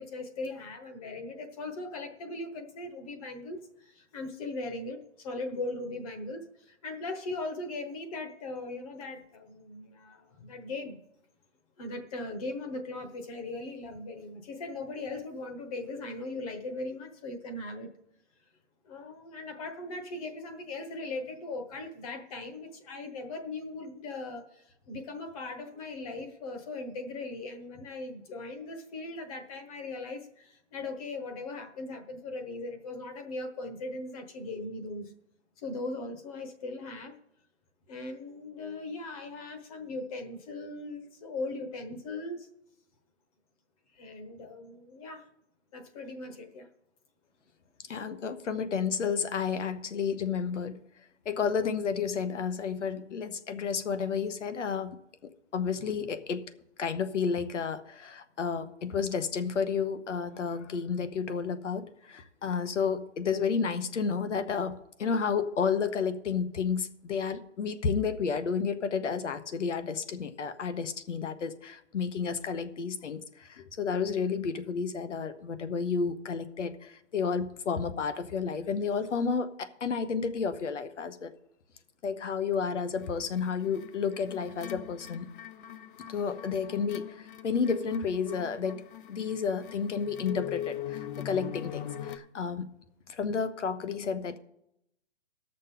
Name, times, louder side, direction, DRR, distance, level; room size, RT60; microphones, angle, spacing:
voice 1, 0.0-11.0 11.8-17.9 18.8-35.1 35.6-37.1 37.9-42.5 43.9-45.3 45.7-46.7, left 2 dB, 30° left, 6 dB, 1.1 m, -39 dB
voice 2, 47.9-50.8 51.2-55.0 55.5-56.5 56.8-81.3 82.0-85.3 86.1-92.7 93.1-94.4, left 6 dB, 90° left, 10 dB, 1.1 m, -31 dB
sound 1, 83.0-92.2, left 11 dB, 45° left, 0.6 m, -42 dB
18.5 x 6.5 x 3.8 m, 0.80 s
hypercardioid pair, 160°, 35 cm